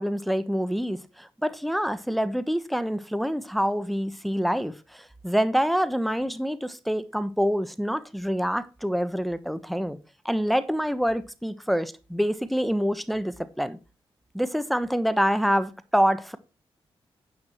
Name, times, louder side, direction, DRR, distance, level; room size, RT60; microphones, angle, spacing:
voice 1, 0.0-10.0 10.2-13.8 14.3-16.4, equal, ahead, 1.1 m, -26 dB
9.6 x 8.2 x 4.5 m
cardioid pair, 65°, 10 cm